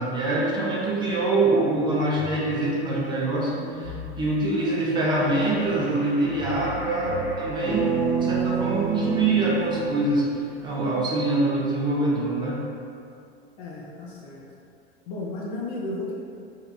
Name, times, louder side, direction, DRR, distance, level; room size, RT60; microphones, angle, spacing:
voice 1, 0.0-12.6, right 2 dB, 15° right, -5 dB, 0.4 m, -24 dB
sound 1, 2.2-2.4 2.8-3.0 3.5-4.3 5.2-5.9 6.4-7.3, left 2 dB, 75° left, 0.8 m, -39 dB
sound 2, 5.2-8.6 11.2-11.3, equal, 85° right, 1.1 m, -40 dB
sound 3, 7.7-10.6, right 5 dB, 55° right, 0.6 m, -28 dB
voice 2, 13.6-14.4 15.1-16.1, left 2 dB, 40° left, -4 dB, 0.5 m, -33 dB
3.2 x 2.8 x 2.3 m, 2.5 s
figure-of-eight pair, 85°, 32 cm